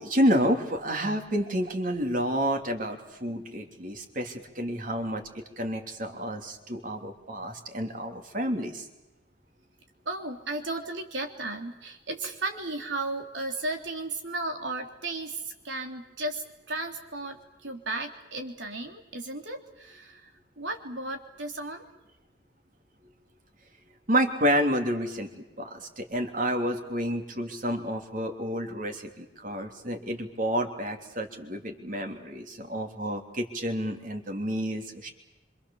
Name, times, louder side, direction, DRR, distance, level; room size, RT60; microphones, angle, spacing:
voice 1, 0.0-5.2 5.6-8.9 24.1-35.1, equal, 50° right, 4 dB, 3.2 m, -29 dB
voice 2, 10.0-21.8, right 2 dB, 90° right, 4 dB, 3.4 m, -35 dB
26.5 x 25.0 x 7.2 m, 1.0 s
head